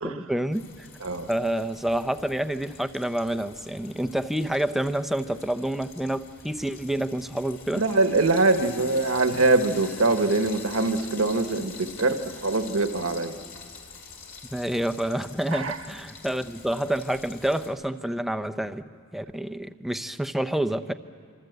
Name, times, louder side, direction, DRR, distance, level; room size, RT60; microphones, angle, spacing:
voice 1, 0.0-0.9 1.3-7.8 14.5-18.8 19.1-20.9, right 1 dB, ahead, 10 dB, 0.7 m, -28 dB
Frying (food), 0.5-17.7, left 5 dB, 65° left, 3.9 m, -45 dB
voice 2, 7.7-13.4 15.5-15.8, right 3 dB, 65° right, 7 dB, 1.4 m, -23 dB
26.0 x 25.5 x 8.0 m, 2.1 s
head